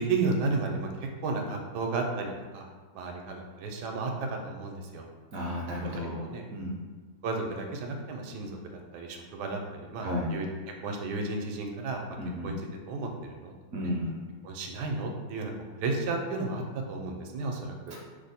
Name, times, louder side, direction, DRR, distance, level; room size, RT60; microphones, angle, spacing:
voice 1, 0.0-2.6 2.9-5.1 6.0-6.4 7.2-8.6 8.9-10.5 10.8-12.0 12.4-12.6 12.9-13.5 13.8-13.9 14.4-15.5 15.8-17.7, right 3 dB, 90° right, 2 dB, 1.2 m, -33 dB
voice 2, 5.3-6.2 6.5-6.7 10.0-10.3 12.2-12.5 13.7-14.1 17.9-18.0, left 1 dB, 70° right, -2 dB, 0.9 m, -33 dB
3.0 x 2.0 x 4.0 m, 1.4 s
omnidirectional pair, 1.7 m